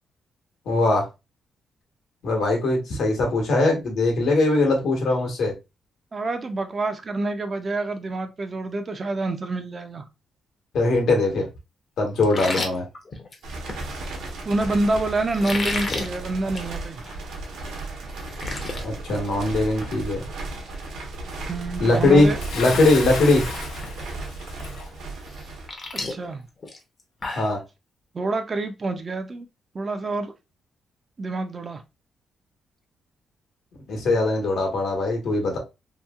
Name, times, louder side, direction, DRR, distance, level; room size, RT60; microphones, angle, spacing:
voice 1, 0.7-1.1 2.2-5.5 10.7-11.4 12.0-12.8 18.8-20.2 21.8-22.3 22.5-23.4 27.3-27.6 33.9-35.6, left 2 dB, 70° left, 1.1 m, -21 dB
voice 2, 6.1-10.0 14.5-17.0 21.5-22.4 26.1-26.5 28.1-29.5 29.7-30.3 31.2-31.8, right 2 dB, 30° right, 0.4 m, -27 dB
sound 1, 12.2-13.8 15.3-16.1 16.5-16.7 17.1-17.2 17.7-17.8 18.0-18.8 19.2-19.5 19.8-19.9 21.8-21.9 22.3-22.6 22.9-23.4 23.8-23.9 25.3-27.6, left 2 dB, 30° left, 0.6 m, -32 dB
sound 2, 13.4-26.3, right 2 dB, 85° right, 1.0 m, -35 dB
Bathtub (filling or washing) / Splash splatter, 22.4-24.9, left 3 dB, 85° left, 0.7 m, -33 dB
2.9 x 2.7 x 2.2 m
cardioid pair, 145°, 0 cm